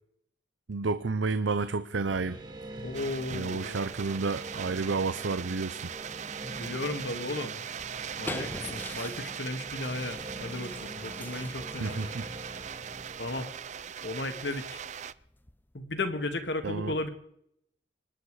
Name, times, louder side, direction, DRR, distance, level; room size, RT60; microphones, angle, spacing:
voice 1, 0.7-2.4 3.3-5.9 11.8-12.2 16.6-17.0, right 4 dB, 85° right, 12 dB, 0.7 m, -30 dB
sound 1, 2.1-13.4, right 1 dB, 25° right, 2.0 m, -45 dB
voice 2, 2.8-3.8 6.4-7.6 8.2-12.1 13.2-13.5 14.0-14.8 15.7-17.1, left 2 dB, 70° left, 7 dB, 2.0 m, -35 dB
sound 2, 2.9-15.1, right 8 dB, 40° right, 0.5 m, -40 dB
sound 3, 7.8-15.9, left 1 dB, 10° left, 0.7 m, -46 dB
25.5 x 10.5 x 4.9 m, 0.73 s
head